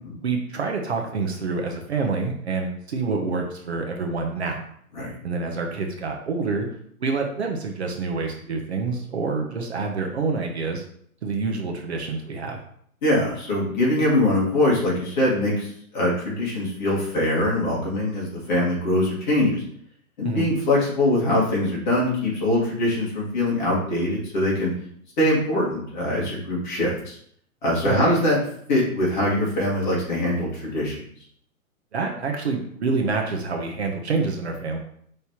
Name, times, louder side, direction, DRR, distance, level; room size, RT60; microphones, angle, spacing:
voice 1, 0.2-4.6 5.2-6.7 7.0-10.8 11.2-12.6 20.2-20.5 27.8-28.1 31.9-34.8, right 4 dB, 50° right, 2 dB, 0.7 m, -27 dB
voice 2, 13.0-19.6 20.2-24.7 25.2-27.2 27.6-28.4 28.7-31.0, left 1 dB, 30° left, -5 dB, 1.6 m, -23 dB
5.7 x 3.2 x 2.8 m, 0.65 s
hypercardioid pair, 170°, 44 cm